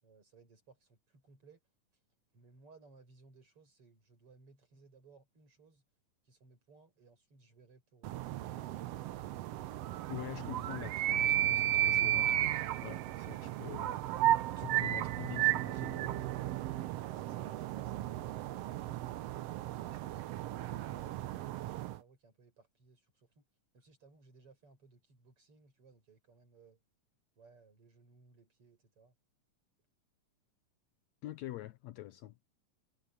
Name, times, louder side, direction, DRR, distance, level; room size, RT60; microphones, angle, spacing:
voice 1, 0.0-1.6 2.3-5.8 6.2-8.7 16.9-20.2 20.7-23.5 23.7-26.8 27.4-29.1, right 4 dB, 40° right, 6.4 m, -62 dB
sound 1, 8.0-22.0, right 13 dB, 80° right, 1.4 m, -34 dB
voice 2, 10.1-14.0 14.6-16.3 31.2-32.4, left 15 dB, 75° left, 1.7 m, -45 dB
omnidirectional pair, 3.8 m